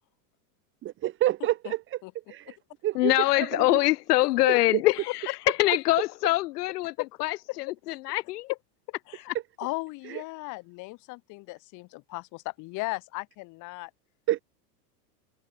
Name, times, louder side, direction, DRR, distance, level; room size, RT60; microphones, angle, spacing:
voice 1, 0.8-2.0 2.3-2.6 2.8-3.8 4.5-4.8 10.1-10.2 14.3-14.4, right 14 dB, 25° right, 2.1 m, -29 dB
voice 2, 3.0-5.0 5.3-5.4 5.6-6.9 7.2-8.5, left 18 dB, 70° left, 1.3 m, -24 dB
voice 3, 9.6-13.9, left 24 dB, 40° left, 6.9 m, -36 dB
supercardioid pair, 170°, 48 cm